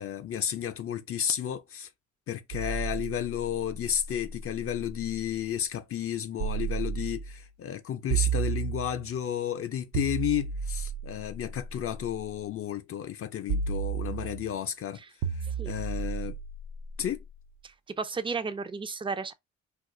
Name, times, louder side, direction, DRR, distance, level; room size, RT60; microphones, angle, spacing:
voice 1, 0.0-1.9 2.3-15.0 15.3-16.4 17.0-17.2, left 10 dB, 50° left, 0.4 m, -32 dB
sound 1, 2.5-5.3 6.4-7.4 8.1-9.2 9.9-12.2 13.5-14.6 15.2-17.4, right 6 dB, 70° right, 0.6 m, -33 dB
voice 2, 17.6-19.3, right 5 dB, 15° right, 0.4 m, -34 dB
2.4 x 2.3 x 3.7 m
cardioid pair, 90°, 30 cm